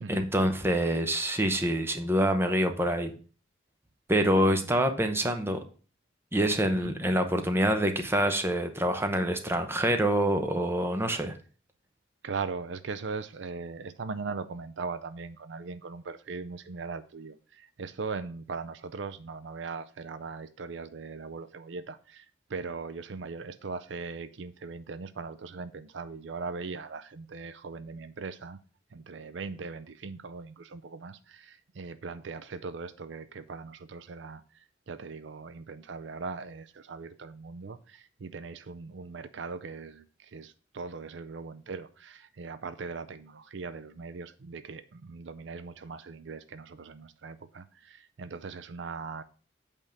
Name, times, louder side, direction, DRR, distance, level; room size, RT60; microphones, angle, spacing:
voice 1, 0.1-3.1 4.1-5.6 6.3-11.4, right 1 dB, 10° right, 6 dB, 0.8 m, -26 dB
voice 2, 4.3-4.6 6.7-6.9 12.2-28.6 28.9-34.4 34.9-49.2, right 4 dB, 65° right, 12 dB, 0.5 m, -40 dB
8.1 x 3.6 x 6.5 m, 0.39 s
head